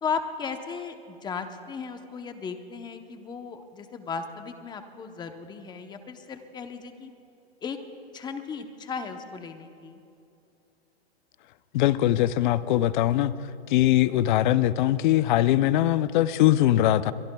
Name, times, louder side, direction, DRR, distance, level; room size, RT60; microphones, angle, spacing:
voice 1, 0.0-7.1 7.6-7.8 8.1-10.0, left 5 dB, 15° left, 7 dB, 0.8 m, -35 dB
voice 2, 11.7-13.3 13.7-17.1, left 13 dB, 50° left, 15 dB, 0.6 m, -21 dB
23.5 x 23.0 x 2.3 m, 2.7 s
hypercardioid pair, 140°, 31 cm